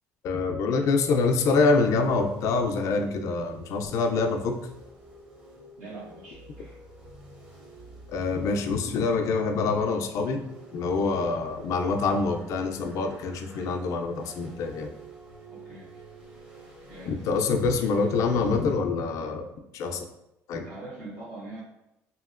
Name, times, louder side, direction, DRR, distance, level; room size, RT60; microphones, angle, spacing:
voice 1, 0.2-4.6 8.1-10.4 10.7-14.9 17.1-20.1 20.5-20.7, left 4 dB, 60° left, 5 dB, 0.4 m, -25 dB
sound 1, 0.9-18.8, right 2 dB, 15° right, 0.6 m, -49 dB
voice 2, 5.8-6.8 15.5-16.0 16.9-17.1 20.5-21.6, right 2 dB, 80° right, -10 dB, 1.0 m, -43 dB
2.8 x 2.7 x 2.4 m, 0.88 s
cardioid pair, 120°, 6 cm